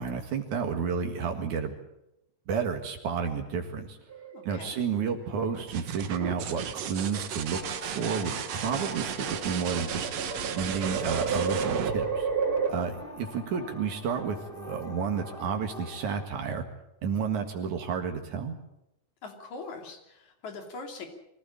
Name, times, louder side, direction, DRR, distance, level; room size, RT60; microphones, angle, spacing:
voice 1, 0.0-1.8 2.5-4.0 4.4-12.3 12.7-16.6 17.0-18.6, right 6 dB, 80° right, 4 dB, 3.3 m, -31 dB
sound 1, 4.1-4.9 6.1-6.5 7.4-12.7, right 5 dB, 30° right, 3.2 m, -32 dB
voice 2, 4.3-4.8 19.2-21.1, left 3 dB, 70° left, 4 dB, 4.3 m, -42 dB
sound 2, 5.5-13.1 14.9-15.5, right 9 dB, 65° right, 2.2 m, -35 dB
sound 3, 7.5-16.3, left 3 dB, 40° left, 0.8 m, -44 dB
24.0 x 16.0 x 8.9 m, 0.87 s
omnidirectional pair, 3.4 m